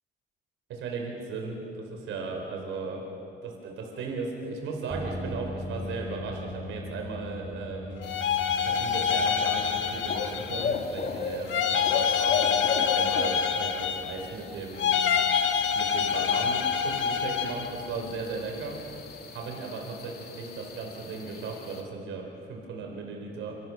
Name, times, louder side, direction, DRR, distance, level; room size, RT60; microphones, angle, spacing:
voice 1, 0.7-3.0 3.4-8.0 8.6-15.0 15.7-18.8 19.3-23.5, right 4 dB, 85° right, 1 dB, 4.3 m, -36 dB
sound 1, 4.9-19.2, left 1 dB, 15° right, 4.5 m, -43 dB
sound 2, 8.0-10.8 11.5-14.3 14.8-17.7, left 7 dB, 75° left, 1.9 m, -26 dB
sound 3, 8.0-21.8, left 5 dB, 50° left, 2.8 m, -37 dB
27.0 x 26.5 x 6.5 m, 2.6 s
cardioid pair, 90°, 20 cm